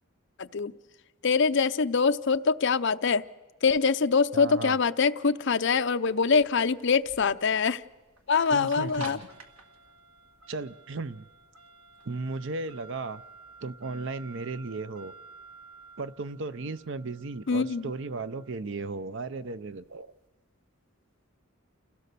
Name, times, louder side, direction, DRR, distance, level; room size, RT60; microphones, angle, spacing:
voice 1, 0.4-0.7 1.2-3.2 3.6-7.8 8.3-9.2 17.5-17.9, left 5 dB, 60° left, 11 dB, 0.6 m, -24 dB
voice 2, 4.3-4.8 8.5-9.2 10.5-11.2 12.1-13.2 13.6-15.1 16.0-20.1, right 3 dB, 60° right, 14 dB, 0.7 m, -35 dB
sound 1, 6.0-20.1, right 4 dB, 85° right, 2.0 m, -51 dB
28.5 x 16.5 x 6.8 m, 1.2 s
head